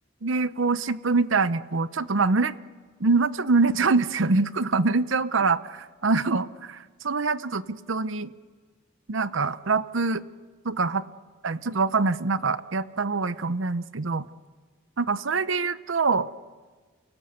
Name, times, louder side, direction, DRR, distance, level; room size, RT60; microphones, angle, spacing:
voice 1, 0.2-2.5 3.0-8.3 9.1-10.2 10.6-11.0 11.4-14.3 15.0-16.3, right 4 dB, 70° right, 15 dB, 0.8 m, -24 dB
30.0 x 18.0 x 8.1 m, 1.5 s
head